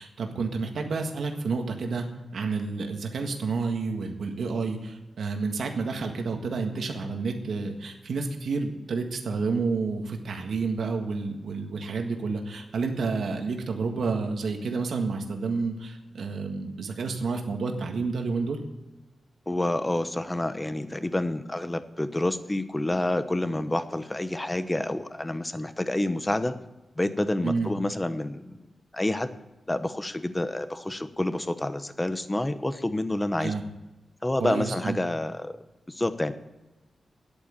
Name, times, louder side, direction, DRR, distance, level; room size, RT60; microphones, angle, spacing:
voice 1, 0.0-2.1 2.3-18.6 27.4-27.7 33.4-33.6 34.4-35.0, right 4 dB, 80° right, 3 dB, 1.7 m, -30 dB
voice 2, 19.5-26.5 27.0-28.6 28.9-29.3 29.7-33.5 34.2-35.5 35.9-36.3, left 1 dB, 15° left, 11 dB, 1.0 m, -28 dB
10.5 x 8.9 x 8.8 m, 1.0 s
wide cardioid pair, 90°, 0 cm